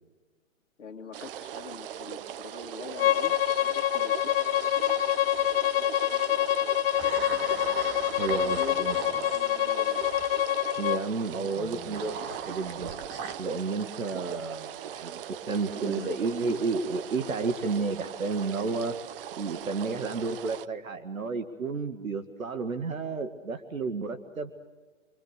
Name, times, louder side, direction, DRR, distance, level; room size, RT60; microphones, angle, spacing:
voice 1, 0.8-5.2 8.1-10.0 15.7-16.1 16.5-16.6, left 5 dB, 60° left, 2 dB, 1.9 m, -44 dB
sound 1, 1.1-20.7, right 10 dB, 45° right, 0.8 m, -40 dB
Bowed string instrument, 3.0-11.0, left 12 dB, 45° left, 0.7 m, -26 dB
sound 2, 5.3-5.8 7.0-10.3 11.5-13.3, right 6 dB, 25° right, 1.9 m, -39 dB
voice 2, 8.2-9.0 10.8-12.9 13.4-18.9 19.3-24.5, right 4 dB, 75° right, 8 dB, 2.0 m, -31 dB
26.0 x 25.0 x 6.7 m, 1.3 s
figure-of-eight pair, 125°, 41 cm